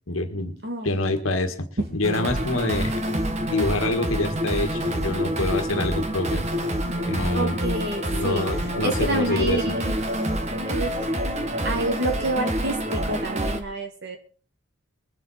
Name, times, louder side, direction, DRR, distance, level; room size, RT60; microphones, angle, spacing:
voice 1, 0.1-0.6 0.8-1.7 1.9-3.0 3.4-6.4 7.0-7.6 8.1-9.6, left 2 dB, 70° left, 6 dB, 1.7 m, -26 dB
voice 2, 0.6-1.0 5.2-5.3 7.3-8.4 8.8-10.0 10.7-10.9 11.6-14.2, right 2 dB, 50° right, 5 dB, 2.3 m, -28 dB
sound 1, 2.0-13.6, equal, 30° right, 1.4 m, -27 dB
22.5 x 7.7 x 4.2 m, 0.42 s
head